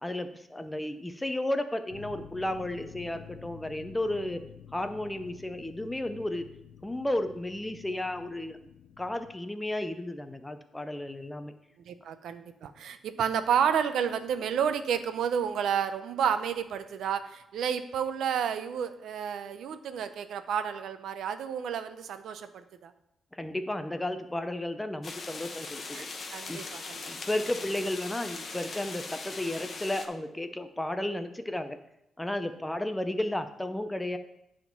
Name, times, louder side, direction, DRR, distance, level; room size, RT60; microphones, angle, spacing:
voice 1, 0.0-4.4 4.7-6.5 6.8-8.6 9.0-11.5 23.3-26.1 26.5-26.7 27.1-31.8 32.2-34.2, left 1 dB, 10° left, 9 dB, 0.5 m, -33 dB
sound 1, 1.9-9.3, left 9 dB, 70° left, 0.4 m, -50 dB
voice 2, 11.9-22.5 22.8-22.9 25.9-26.1 26.3-27.0, right 8 dB, 80° right, 10 dB, 0.5 m, -30 dB
sound 2, 25.0-30.1, left 3 dB, 35° left, 0.8 m, -40 dB
9.4 x 3.7 x 5.9 m, 0.82 s
cardioid pair, 140°, 0 cm